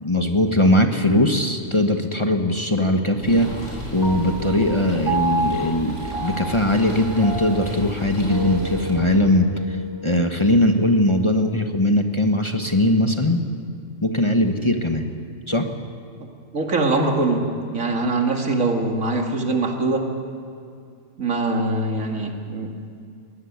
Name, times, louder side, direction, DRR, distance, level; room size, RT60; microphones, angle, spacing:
voice 1, 0.0-3.5 3.9-13.4 14.0-15.0 15.5-15.7, left 1 dB, 25° left, 4 dB, 1.2 m, -20 dB
sound 1, 3.2-8.9, equal, 75° left, 7.1 m, -34 dB
Piano, 4.0-10.7, right 3 dB, 20° right, 1.8 m, -31 dB
voice 2, 16.5-20.1 21.2-22.7, right 2 dB, 80° right, 3 dB, 2.6 m, -23 dB
20.0 x 17.0 x 9.4 m, 2.4 s
omnidirectional pair, 1.4 m